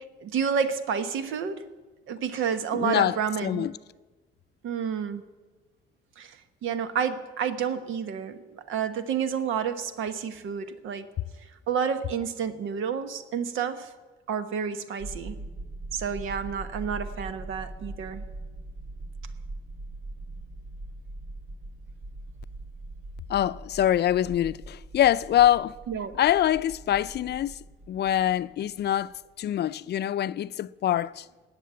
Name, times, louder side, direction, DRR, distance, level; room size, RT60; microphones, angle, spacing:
voice 1, 0.2-1.6 2.1-3.7 4.6-5.2 6.2-11.1 11.7-13.9 14.3-15.4 15.9-18.2 25.9-26.2, right 7 dB, 85° right, 1.1 m, -30 dB
voice 2, 2.7-3.7 23.3-25.8 26.2-27.5 27.9-31.3, left 11 dB, 55° left, 0.5 m, -24 dB
sound 1, 15.0-29.2, right 2 dB, 60° right, 2.4 m, -41 dB
18.0 x 6.8 x 9.4 m
cardioid pair, 90°, 20 cm